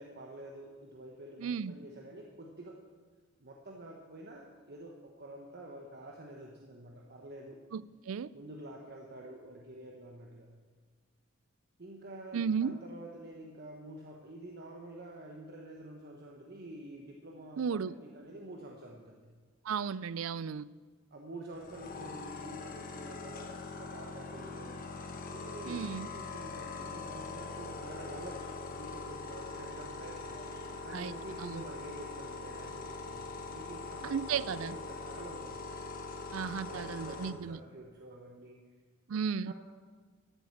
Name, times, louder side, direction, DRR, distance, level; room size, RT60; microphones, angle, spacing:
voice 1, 0.0-2.8 3.4-7.6 8.3-10.5 11.8-19.2 21.1-24.9 25.3-30.4 30.8-35.6 36.7-38.6 39.4-39.5, right 1 dB, 50° right, 0 dB, 1.2 m, -48 dB
voice 2, 1.4-1.8 7.7-8.3 12.3-12.8 17.6-17.9 19.6-20.6 25.7-26.1 30.9-31.1 31.4-31.6 34.0-34.8 36.3-37.6 39.1-39.5, right 6 dB, 85° right, 19 dB, 0.4 m, -34 dB
sound 1, 21.5-37.3, left 3 dB, 45° left, 1.3 m, -42 dB
14.0 x 7.8 x 7.2 m, 1.5 s
head